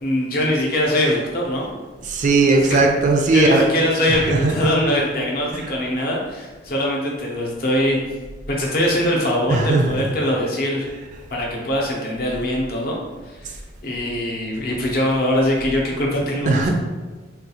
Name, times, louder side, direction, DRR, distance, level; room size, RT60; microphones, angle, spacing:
voice 1, 0.0-1.7 2.4-2.8 3.3-8.0 8.5-10.9 11.3-13.0 13.3-13.6 13.8-16.7, left 1 dB, 55° left, -2 dB, 0.7 m, -22 dB
voice 2, 2.0-3.6 4.1-4.7 5.5-5.7 9.5-10.0 16.5-16.7, right 3 dB, 40° right, 2 dB, 0.3 m, -18 dB
3.6 x 2.3 x 2.9 m, 1.3 s
head